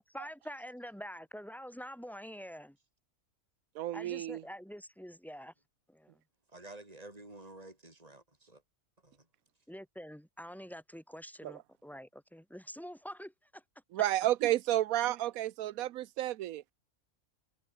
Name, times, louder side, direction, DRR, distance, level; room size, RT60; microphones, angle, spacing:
voice 1, 0.0-2.8 3.9-5.5 5.9-6.2 9.7-13.6, equal, ahead, 5.1 m, -46 dB
voice 2, 3.7-4.4 11.4-11.5 13.9-16.6, right 13 dB, 85° right, 1.1 m, -31 dB
voice 3, 6.5-8.6 9.0-9.3, right 2 dB, 25° right, 4.8 m, -51 dB
omnidirectional pair, 1.5 m